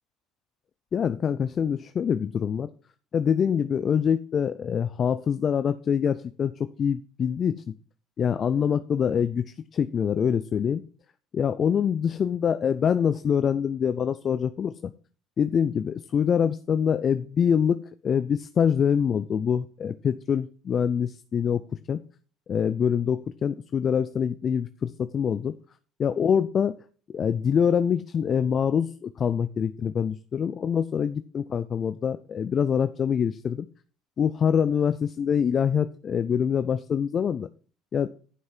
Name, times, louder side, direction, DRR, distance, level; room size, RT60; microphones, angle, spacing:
voice 1, 0.9-2.7 3.1-7.7 8.2-10.8 11.3-14.9 15.4-21.6 21.9-22.0 22.5-25.6 26.0-26.8 27.1-33.7 34.2-37.5 37.9-38.1, left 7 dB, 45° left, 14 dB, 0.5 m, -25 dB
11.0 x 6.3 x 4.4 m, 0.41 s
hypercardioid pair, 70°, 0 cm